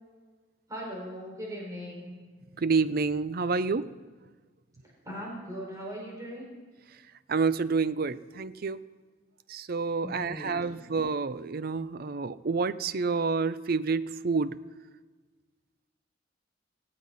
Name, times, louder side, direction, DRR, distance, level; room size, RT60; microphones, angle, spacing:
voice 1, 0.7-2.1 5.0-6.5 10.0-10.9, equal, 20° right, -3 dB, 5.1 m, -39 dB
voice 2, 2.6-3.9 7.3-8.8 9.5-14.6, right 4 dB, 50° right, 15 dB, 0.5 m, -28 dB
18.5 x 16.5 x 4.2 m, 1.4 s
head